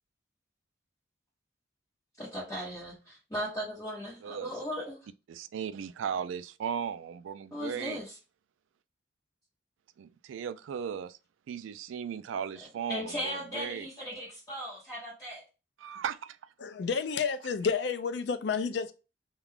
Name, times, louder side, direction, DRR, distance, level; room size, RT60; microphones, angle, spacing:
voice 1, 2.2-5.0 7.5-8.1 12.9-15.4, equal, 20° left, 1.0 m, -37 dB
voice 2, 4.2-4.5 5.3-8.0 10.0-11.2 11.5-13.9 15.8-16.4, right 7 dB, 90° right, 0.3 m, -36 dB
voice 3, 16.6-18.9, left 5 dB, 60° left, 0.4 m, -30 dB
2.4 x 2.3 x 3.3 m
head